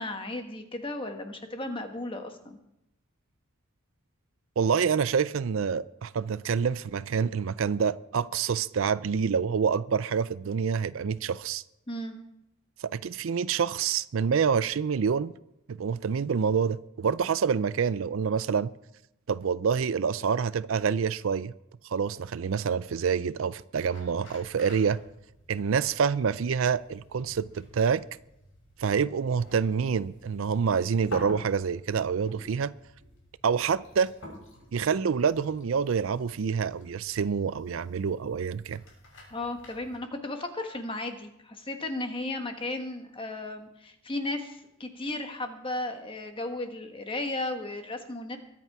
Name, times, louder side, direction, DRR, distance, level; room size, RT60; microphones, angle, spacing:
voice 1, 0.0-2.6 11.9-12.2 39.3-48.4, left 2 dB, 25° left, 1.4 m, -35 dB
voice 2, 4.6-11.6 12.8-15.3 15.7-18.7 19.3-21.5 21.9-25.0 25.5-28.0 28.8-32.7 33.4-34.1 34.7-38.8, right 6 dB, 65° right, 0.4 m, -27 dB
sound 1, 23.9-40.0, left 1 dB, 65° left, 6.5 m, -49 dB
22.5 x 8.4 x 4.8 m
head